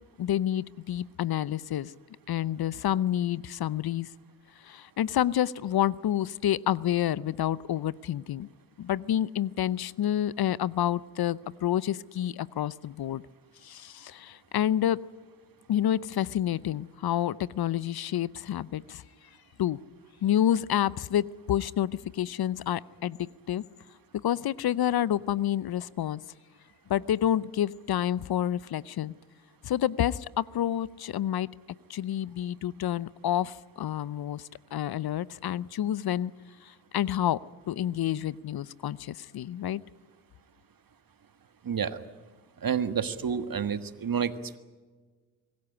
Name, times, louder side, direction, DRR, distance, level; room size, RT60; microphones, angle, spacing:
voice 1, 0.2-1.9 2.3-4.1 4.6-8.5 8.8-13.2 13.6-15.0 15.7-19.0 19.6-19.8 20.2-23.6 24.1-26.2 26.9-29.1 29.6-31.5 31.9-36.3 36.6-37.4 37.7-39.8, left 11 dB, 60° left, 21 dB, 0.7 m, -29 dB
voice 2, 41.6-42.0 42.6-44.6, right 7 dB, 50° right, 11 dB, 1.6 m, -29 dB
24.5 x 15.0 x 10.0 m, 1.4 s
hypercardioid pair, 40°, 43 cm